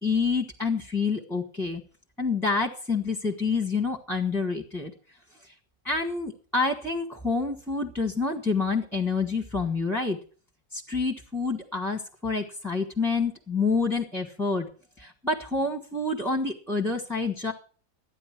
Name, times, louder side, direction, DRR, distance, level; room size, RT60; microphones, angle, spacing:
voice 1, 0.0-1.8 2.2-4.9 5.8-10.2 10.7-14.7 15.0-17.5, left 4 dB, ahead, 2 dB, 1.3 m, -27 dB
13.5 x 9.8 x 5.9 m, 0.40 s
omnidirectional pair, 1.9 m